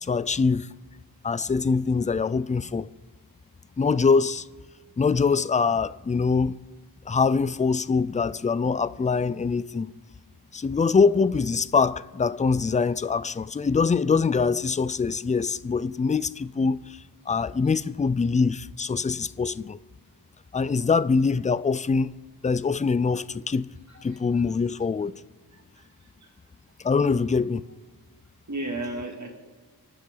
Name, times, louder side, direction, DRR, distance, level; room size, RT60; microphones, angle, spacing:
voice 1, 0.0-0.7 1.2-2.9 3.8-4.5 5.0-6.6 7.1-9.9 10.5-17.0 17.3-19.8 20.5-22.1 22.4-23.7 24.0-25.1 26.8-27.6, left 5 dB, 20° left, 0.3 m, -24 dB
voice 2, 25.5-25.8 26.2-26.3 27.0-27.2 28.5-29.3, right 2 dB, 45° right, 2.6 m, -34 dB
27.5 x 10.0 x 3.9 m
wide cardioid pair, 100°, 41 cm